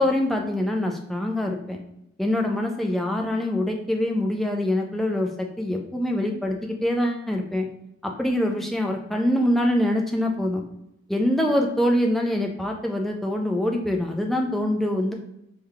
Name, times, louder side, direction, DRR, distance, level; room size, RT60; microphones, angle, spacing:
voice 1, 0.0-1.8 2.2-7.7 8.0-10.6 11.1-15.1, left 1 dB, ahead, 1 dB, 0.3 m, -24 dB
3.4 x 2.2 x 3.4 m, 0.83 s
head